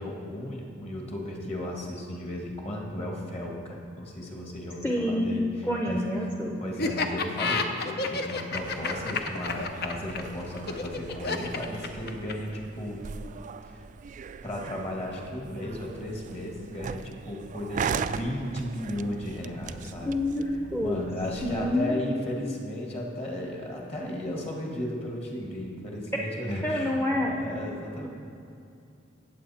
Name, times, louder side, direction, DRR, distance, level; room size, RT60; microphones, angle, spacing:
voice 1, 0.0-5.5 5.8-6.1 6.6-13.0 13.6-13.8 14.4-20.1 20.8-27.0 27.2-28.1, left 1 dB, 35° left, -1 dB, 1.7 m, -35 dB
voice 2, 4.8-5.3 5.6-6.6 20.1-21.0 21.4-22.0 26.6-27.3, left 1 dB, 10° left, -2 dB, 0.8 m, -27 dB
Laughter, 6.8-12.5, left 4 dB, 55° left, 0.7 m, -30 dB
sound 1, 8.6-21.8, right 6 dB, 40° right, 0.3 m, -39 dB
17.5 x 7.6 x 4.2 m, 2.5 s
head